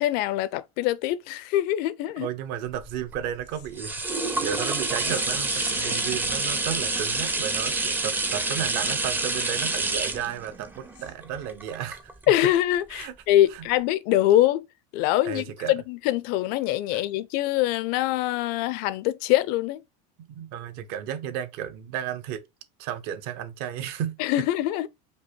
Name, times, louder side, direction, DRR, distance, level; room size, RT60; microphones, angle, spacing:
voice 1, 0.0-2.3 12.3-14.7 14.9-19.8 24.2-24.9, left 14 dB, 50° left, 0.5 m, -24 dB
voice 2, 2.2-12.1 12.4-12.5 12.9-13.2 13.5-13.7 15.2-15.7 16.9-17.0 20.2-22.4 22.8-24.2, right 10 dB, 50° right, 0.7 m, -33 dB
sound 1, 2.7-12.5 13.0-13.1, right 3 dB, 10° right, 0.5 m, -28 dB
sound 2, 3.5-3.7 4.7-6.1 8.0-8.1 8.6-8.7 10.9-11.1, left 12 dB, 85° left, 0.9 m, -41 dB
5.2 x 2.1 x 4.4 m
supercardioid pair, 150°, 21 cm